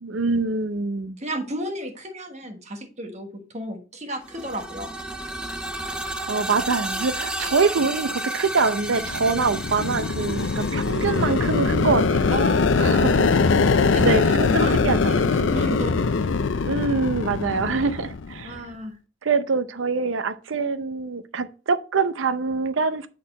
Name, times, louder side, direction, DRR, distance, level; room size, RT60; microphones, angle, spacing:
voice 1, 0.0-1.2 6.3-12.3 12.8-13.3 14.0-15.2 16.6-18.5 19.2-23.1, right 4 dB, 75° right, 0.6 m, -24 dB
voice 2, 1.2-4.9 12.3-13.5 13.8-16.1 18.4-19.0, equal, 35° right, 1.3 m, -33 dB
sound 1, 4.2-12.0, right 1 dB, 5° right, 0.6 m, -32 dB
sound 2, 8.8-18.6, left 4 dB, 70° left, 0.5 m, -22 dB
8.5 x 4.2 x 4.2 m
head